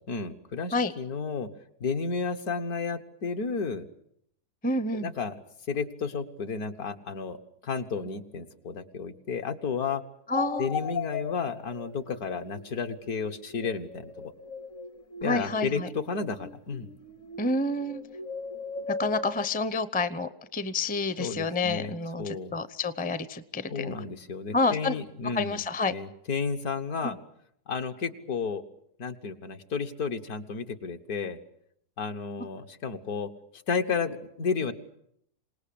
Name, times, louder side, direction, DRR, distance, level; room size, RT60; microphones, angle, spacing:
voice 1, 0.1-1.5 1.8-3.8 5.0-5.3 5.7-7.4 7.6-10.0 10.6-14.3 15.2-16.9 21.2-22.6 23.7-25.6 25.9-27.2 27.7-28.6 29.0-31.4 32.0-33.3 33.7-34.7, left 5 dB, 70° left, 6 dB, 1.8 m, -32 dB
voice 2, 4.6-5.1 10.3-10.7 15.2-15.9 17.4-18.0 19.0-23.9 24.5-25.0 25.3-25.9 27.0-27.2, left 3 dB, 10° left, 13 dB, 0.5 m, -29 dB
sound 1, 10.3-19.5, left 4 dB, 55° left, 1.4 m, -38 dB
27.0 x 19.0 x 8.6 m, 0.73 s
omnidirectional pair, 1.7 m